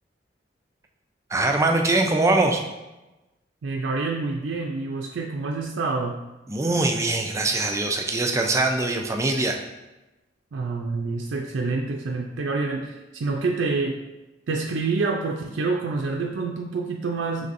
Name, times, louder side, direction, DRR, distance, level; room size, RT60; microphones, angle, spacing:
voice 1, 1.3-2.6 6.5-9.6, right 2 dB, 15° right, 3 dB, 0.4 m, -22 dB
voice 2, 3.6-6.2 10.5-14.0 14.5-17.5, right 3 dB, 85° right, 0 dB, 0.4 m, -27 dB
5.3 x 3.2 x 2.5 m, 1.0 s
head